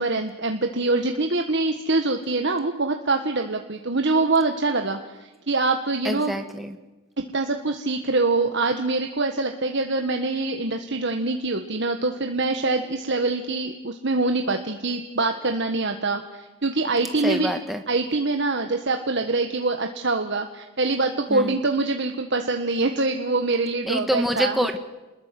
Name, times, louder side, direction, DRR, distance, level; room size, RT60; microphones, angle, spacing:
voice 1, 0.0-6.3 7.2-17.5 17.9-24.6, right 3 dB, 55° right, 5 dB, 1.6 m, -24 dB
voice 2, 6.0-6.8 17.2-17.8 21.3-21.5 23.8-24.8, equal, ahead, 5 dB, 1.4 m, -26 dB
28.5 x 21.0 x 7.8 m, 1.1 s
head